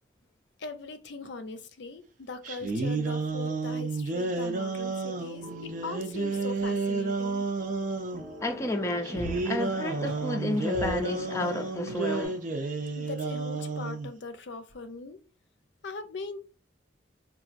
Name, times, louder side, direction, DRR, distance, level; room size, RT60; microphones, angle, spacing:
voice 1, 0.6-7.5 13.0-15.2 15.8-16.4, left 3 dB, 75° left, 0.5 m, -40 dB
sound 1, 2.4-8.2 9.0-14.1, right 3 dB, 45° right, 0.5 m, -31 dB
sound 2, 5.3-12.3, right 1 dB, 90° right, 1.2 m, -43 dB
voice 2, 8.4-12.4, left 1 dB, 15° left, 0.4 m, -31 dB
4.0 x 2.4 x 2.4 m
head